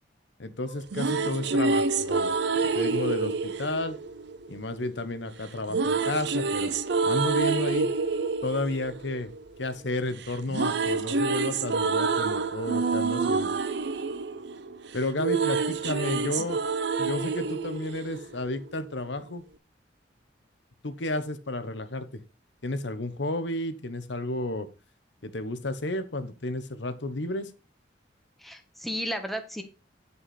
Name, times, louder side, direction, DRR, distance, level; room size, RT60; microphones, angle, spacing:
voice 1, 0.4-2.3 2.6-4.0 4.5-6.7 7.0-7.9 8.4-9.3 9.6-13.5 14.9-16.6 17.0-19.4 20.8-22.2 22.6-24.7 25.2-27.5, left 2 dB, 75° left, 11 dB, 1.0 m, -32 dB
sound 1, 0.7-4.8 5.7-9.9 10.2-18.7, right 4 dB, 65° right, 0.6 m, -28 dB
voice 2, 16.0-16.5 28.4-29.6, equal, ahead, 6 dB, 1.2 m, -34 dB
9.5 x 5.5 x 4.2 m, 0.31 s
head